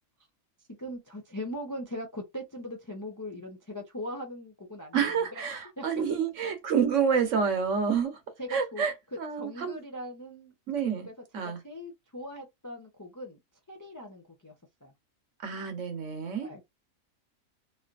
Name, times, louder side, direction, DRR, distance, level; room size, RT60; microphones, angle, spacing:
voice 1, 0.8-5.4 5.8-5.9 6.4-6.5 8.4-8.9 9.4-10.5 10.8-11.1 11.4-13.4 13.7-14.5 14.8-14.9 16.4-16.6, left 1 dB, 30° left, 0.4 m, -40 dB
voice 2, 4.9-8.2 8.5-9.8 10.7-11.1 11.3-11.6 15.4-16.5, right 6 dB, 65° right, 1.2 m, -28 dB
3.3 x 2.6 x 2.5 m
omnidirectional pair, 1.4 m